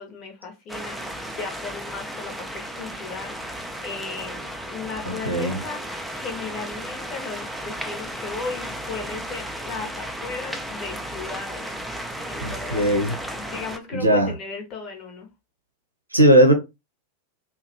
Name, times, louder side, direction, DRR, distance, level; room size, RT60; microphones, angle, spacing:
voice 1, 0.0-12.9 13.3-15.3, left 4 dB, 35° left, 0.8 m, -36 dB
sound 1, 0.7-13.8, right 1 dB, 5° right, 0.4 m, -34 dB
voice 2, 5.0-5.6 12.4-13.2 13.9-14.3 16.1-16.5, right 1 dB, 85° right, 0.6 m, -18 dB
2.7 x 2.1 x 2.5 m
figure-of-eight pair, 90°, 0 cm